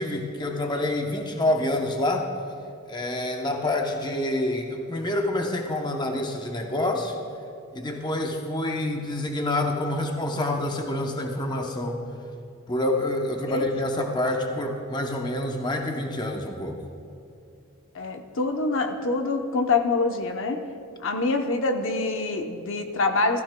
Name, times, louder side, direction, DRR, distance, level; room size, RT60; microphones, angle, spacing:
voice 1, 0.0-2.3 2.9-7.1 7.7-12.0 12.7-16.8, left 1 dB, 20° left, 2 dB, 0.7 m, -27 dB
voice 2, 17.9-20.6 21.0-23.4, left 3 dB, 60° left, 5 dB, 0.8 m, -25 dB
15.0 x 15.0 x 2.2 m, 2.7 s
head